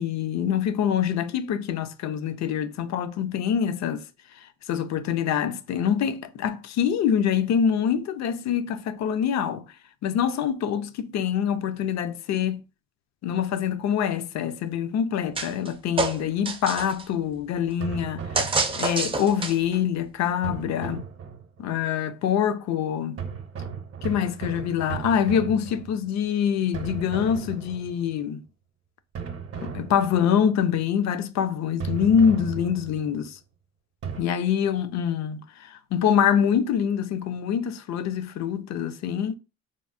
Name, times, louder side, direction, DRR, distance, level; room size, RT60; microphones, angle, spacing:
voice 1, 0.0-4.0 4.7-9.7 10.0-12.6 13.2-18.4 18.8-21.0 21.6-23.2 24.0-28.4 29.6-33.4 34.2-39.4, left 8 dB, 65° left, 0.4 m, -25 dB
sound 1, 15.4-15.7 16.0-17.0 18.4-19.8, right 3 dB, 20° right, 0.4 m, -27 dB
sound 2, 17.8-19.2 20.4-21.7 23.2-26.3 26.7-28.2 29.2-30.5 31.8-33.2 34.0-34.2, right 6 dB, 50° right, 0.7 m, -36 dB
3.5 x 2.0 x 2.4 m
cardioid pair, 90°, 30 cm